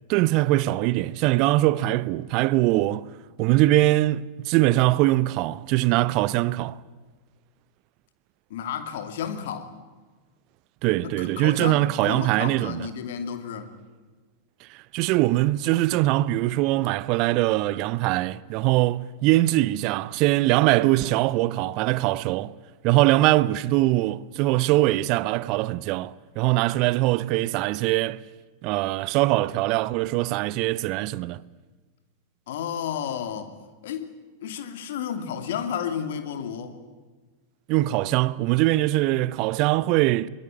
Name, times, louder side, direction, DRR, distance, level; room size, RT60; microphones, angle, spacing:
voice 1, 0.1-3.1 3.4-6.8 10.8-12.9 14.7-22.6 22.8-28.2 28.6-31.4 37.7-40.3, right 17 dB, 40° right, 0.7 m, -22 dB
voice 2, 8.5-9.7 11.0-13.7 32.5-33.5 33.8-34.1 34.4-36.8, left 8 dB, 55° left, 2.7 m, -32 dB
23.5 x 21.0 x 8.9 m
figure-of-eight pair, 90°, 0 cm